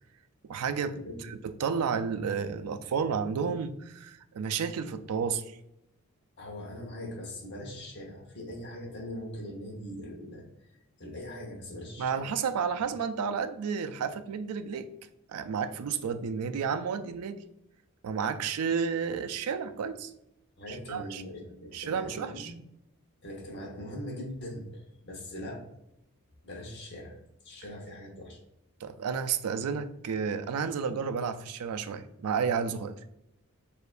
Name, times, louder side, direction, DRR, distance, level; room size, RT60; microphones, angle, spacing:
voice 1, 0.4-0.9 1.2-5.6 12.0-14.9 15.3-17.4 18.0-20.1 20.7-21.2 21.7-22.5 28.8-33.0, right 6 dB, 80° right, 10 dB, 0.4 m, -31 dB
voice 2, 6.4-12.3 20.6-22.5 23.2-25.6 26.4-27.2 27.4-28.4, left 1 dB, 50° left, 1 dB, 1.0 m, -41 dB
6.5 x 2.6 x 2.5 m, 0.83 s
head